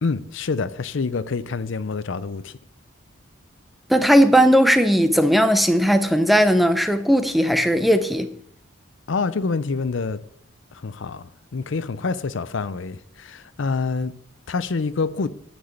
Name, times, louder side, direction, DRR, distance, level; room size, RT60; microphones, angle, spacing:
voice 1, 0.0-2.5 9.1-10.2 10.7-11.2 11.5-14.1 14.5-15.3, left 4 dB, 65° left, 0.5 m, -26 dB
voice 2, 3.9-8.3, equal, ahead, 0.7 m, -17 dB
9.5 x 6.2 x 8.1 m
head